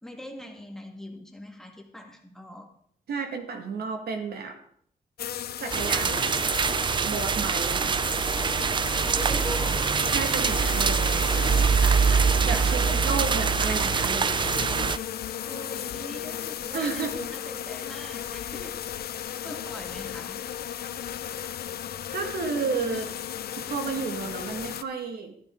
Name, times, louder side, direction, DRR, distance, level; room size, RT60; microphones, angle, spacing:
voice 1, 0.0-2.7 9.0-10.0 12.1-13.2 15.5-18.8 19.4-20.5, left 1 dB, 5° left, 1 dB, 1.9 m, -41 dB
voice 2, 3.1-4.6 5.6-6.4 7.0-8.0 10.1-11.2 11.7-12.1 12.5-14.4 16.7-17.2 22.1-23.1 23.6-25.3, right 5 dB, 85° right, 4 dB, 2.1 m, -32 dB
sound 1, 5.2-24.8, left 10 dB, 80° left, 0.6 m, -35 dB
sound 2, 5.7-15.0, right 5 dB, 30° right, 0.4 m, -24 dB
13.5 x 13.5 x 3.9 m, 0.64 s
wide cardioid pair, 175°, 16 cm